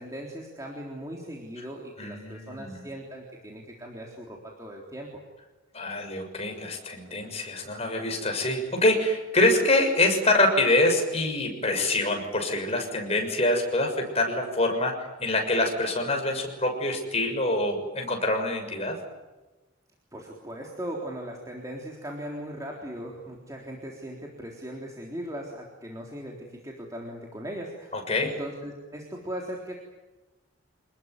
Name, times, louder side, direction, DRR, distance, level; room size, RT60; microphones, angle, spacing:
voice 1, 0.0-5.1 20.1-29.7, right 1 dB, 15° right, -1 dB, 3.7 m, -38 dB
voice 2, 2.0-2.8 5.7-18.9 27.9-28.3, left 2 dB, 30° left, 3 dB, 6.6 m, -25 dB
27.5 x 20.5 x 9.6 m, 1.1 s
head